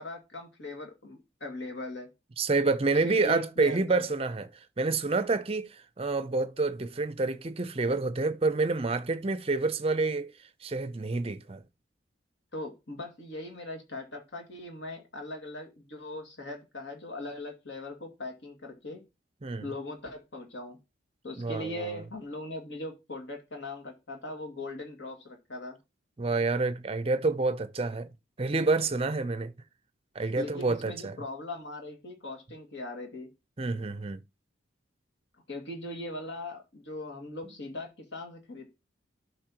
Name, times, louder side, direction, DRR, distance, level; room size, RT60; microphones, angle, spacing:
voice 1, 0.0-2.1 3.0-4.0 12.5-19.1 19.6-20.8 21.2-25.8 30.4-33.3 35.5-38.8, left 2 dB, 60° left, 2.1 m, -40 dB
voice 2, 2.4-10.3 10.6-11.6 19.4-19.7 21.4-22.0 26.2-28.1 28.4-29.5 30.1-31.2 33.6-34.2, right 3 dB, 30° right, 0.5 m, -28 dB
12.5 x 5.5 x 2.9 m
head